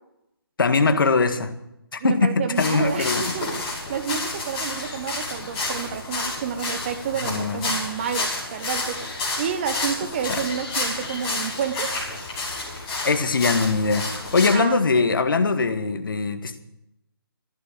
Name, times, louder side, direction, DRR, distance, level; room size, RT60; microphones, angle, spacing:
voice 1, 0.6-1.5 1.9-3.3 7.2-7.7 10.2-10.4 13.0-16.6, left 4 dB, 60° left, 8 dB, 1.8 m, -21 dB
voice 2, 2.0-9.0 9.4-11.9 14.5-15.1, right 7 dB, 30° right, 9 dB, 1.0 m, -30 dB
sound 1, 2.5-14.5, left 2 dB, 20° left, 6.6 m, -30 dB
14.5 x 11.0 x 7.4 m, 0.85 s
figure-of-eight pair, 155°, 13 cm